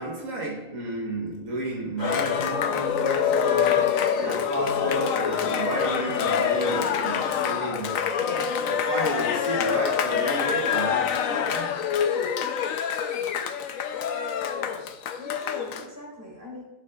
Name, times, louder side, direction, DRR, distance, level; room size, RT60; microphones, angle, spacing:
voice 1, 0.0-8.0 8.6-11.8, right 2 dB, 80° right, 1.5 m, -32 dB
Cheering, 2.0-15.8, left 8 dB, 85° left, 1.0 m, -26 dB
voice 2, 14.8-16.6, left 1 dB, 15° right, 2.7 m, -43 dB
11.0 x 7.0 x 2.4 m
omnidirectional pair, 1.4 m